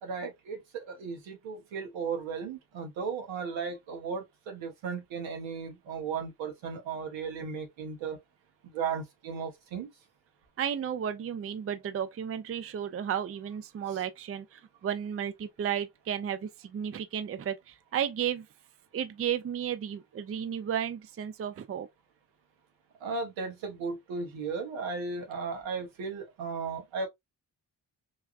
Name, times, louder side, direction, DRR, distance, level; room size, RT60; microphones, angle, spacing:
voice 1, 0.0-8.2 8.6-9.9 23.0-27.1, right 5 dB, 80° right, 1.1 m, -36 dB
voice 2, 10.6-18.5 18.9-21.9, right 9 dB, 30° right, 0.5 m, -33 dB
3.4 x 2.3 x 2.4 m
supercardioid pair, 50°, 46 cm